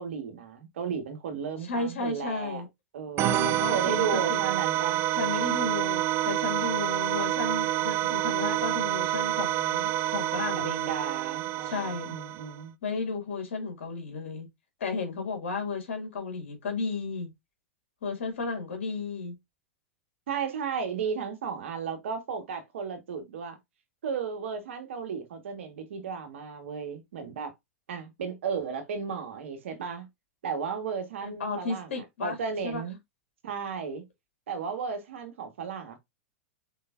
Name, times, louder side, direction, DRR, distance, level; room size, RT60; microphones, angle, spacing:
voice 1, 0.0-2.6 2.9-5.0 10.5-12.7 20.3-23.6 24.0-27.5 27.9-30.1 30.4-33.0 33.4-34.0 34.5-36.0, right 6 dB, 70° right, 1.5 m, -34 dB
voice 2, 1.7-2.7 3.2-4.4 5.1-10.9 11.6-12.2 12.8-14.5 14.8-17.3 18.0-19.4 31.2-32.4 32.6-32.8, left 4 dB, 70° left, 2.4 m, -33 dB
sound 1, 3.2-12.6, right 14 dB, 35° right, 0.4 m, -28 dB
4.9 x 3.8 x 2.5 m
hypercardioid pair, 100°, 7 cm